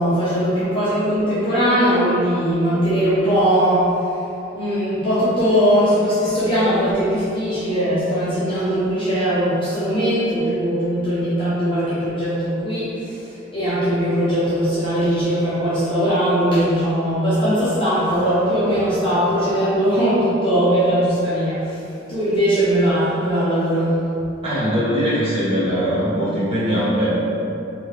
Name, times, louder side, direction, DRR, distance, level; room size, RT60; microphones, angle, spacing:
voice 1, 0.0-4.2 4.5-24.1, equal, 25° left, -12 dB, 0.8 m, -20 dB
voice 2, 24.4-27.2, equal, 30° right, -12 dB, 1.3 m, -21 dB
4.3 x 2.7 x 3.4 m, 2.7 s
head